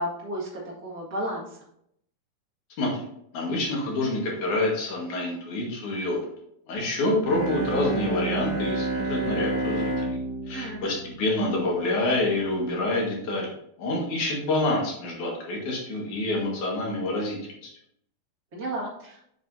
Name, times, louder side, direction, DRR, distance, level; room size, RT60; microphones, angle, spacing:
voice 1, 0.0-1.6 10.5-10.9 18.5-19.2, right 1 dB, 40° right, -5 dB, 1.4 m, -33 dB
voice 2, 3.3-6.2 6.7-10.2 10.5-17.4 17.6-17.7, left 2 dB, 60° left, -2 dB, 2.6 m, -27 dB
Bowed string instrument, 7.2-12.1, right 2 dB, 85° right, 0.3 m, -30 dB
7.6 x 6.7 x 2.6 m, 0.73 s
omnidirectional pair, 4.6 m